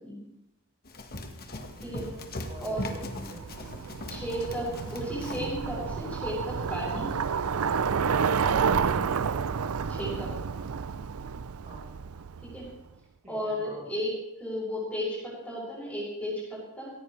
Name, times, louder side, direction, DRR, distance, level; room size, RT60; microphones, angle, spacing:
Run, 0.9-5.6, left 1 dB, 45° left, 1.5 m, -39 dB
voice 1, 1.3-2.1 2.4-3.6 11.6-11.8 13.2-13.9, right 1 dB, 35° right, -5 dB, 5.0 m, -48 dB
Bicycle, 1.8-12.7, right 6 dB, 70° right, 0.5 m, -30 dB
voice 2, 2.6-2.9 4.1-7.1 9.9-10.3 12.4-12.6 13.3-14.1 14.4-16.9, equal, 5° left, -5 dB, 6.9 m, -34 dB
17.5 x 16.5 x 3.3 m, 0.91 s
head